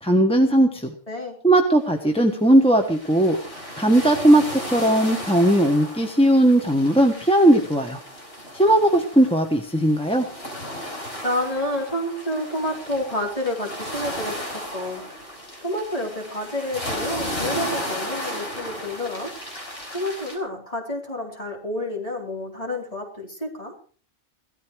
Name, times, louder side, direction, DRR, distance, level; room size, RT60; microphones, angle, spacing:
voice 1, 0.0-0.9 1.4-3.4 3.7-8.0 8.5-10.3, right 1 dB, 5° left, 3 dB, 1.3 m, -18 dB
voice 2, 1.1-1.4 11.2-15.0 15.6-19.3 19.9-23.7, left 1 dB, 30° left, 0 dB, 4.2 m, -29 dB
sound 1, 2.1-2.2 2.6-20.4, equal, 55° left, 5.4 m, -35 dB
17.0 x 14.0 x 4.7 m, 0.41 s
omnidirectional pair, 1.3 m